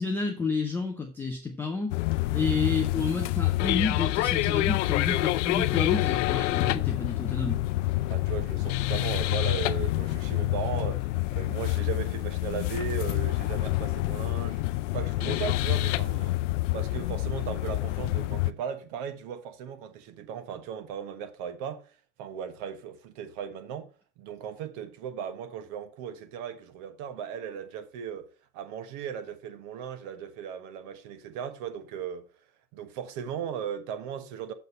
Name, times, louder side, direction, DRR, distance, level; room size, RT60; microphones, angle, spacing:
voice 1, 0.0-2.0 2.3-7.6, left 4 dB, 5° left, 0.3 m, -30 dB
sound 1, 1.9-18.5, left 18 dB, 55° left, 0.5 m, -27 dB
voice 2, 8.1-16.4 16.7-21.9 22.2-23.9 24.2-28.3 28.5-32.3 32.7-34.5, right 8 dB, 45° right, 1.3 m, -37 dB
6.7 x 6.4 x 5.5 m
hypercardioid pair, 135°, 44 cm